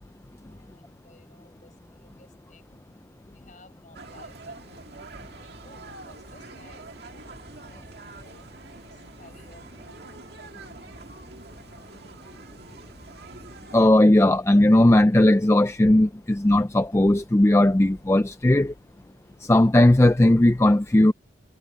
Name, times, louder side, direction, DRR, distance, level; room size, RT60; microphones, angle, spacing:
voice 1, 0.4-2.9 3.3-4.6 5.1-7.8 8.2-10.1, left 2 dB, 40° left, 7.4 m, -56 dB
sound 1, 3.9-13.8, right 3 dB, 55° right, 2.2 m, -45 dB
voice 2, 13.7-18.7 19.4-21.1, left 1 dB, 15° left, 0.4 m, -17 dB
head